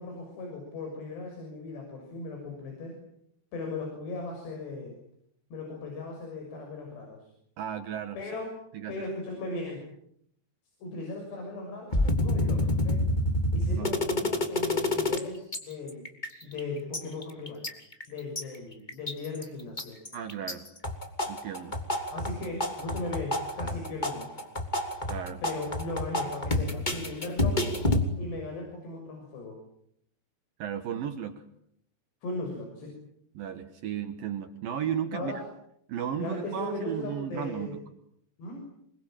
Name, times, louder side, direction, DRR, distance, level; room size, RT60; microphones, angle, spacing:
voice 1, 0.0-3.0 3.5-5.0 5.5-7.3 8.2-8.5 8.9-9.9 10.8-13.1 13.5-16.1 16.4-17.6 18.1-20.0 22.1-24.4 25.4-27.8 28.2-29.6 32.2-33.0 35.1-35.5 36.2-37.8 38.4-38.6, left 2 dB, 80° left, 1 dB, 8.7 m, -37 dB
voice 2, 7.6-8.2 8.7-9.1 13.8-14.0 20.1-20.7 21.3-21.8 25.1-25.4 30.6-31.4 33.3-35.4 35.9-37.8, right 9 dB, 65° right, 9 dB, 3.0 m, -34 dB
sound 1, 11.9-15.2 15.5-15.6 15.9-16.6 16.9-18.4 18.9-19.4 19.8-20.5 20.8-28.0, left 1 dB, 10° left, 2.5 m, -28 dB
27.5 x 24.0 x 9.0 m, 0.72 s
omnidirectional pair, 4.8 m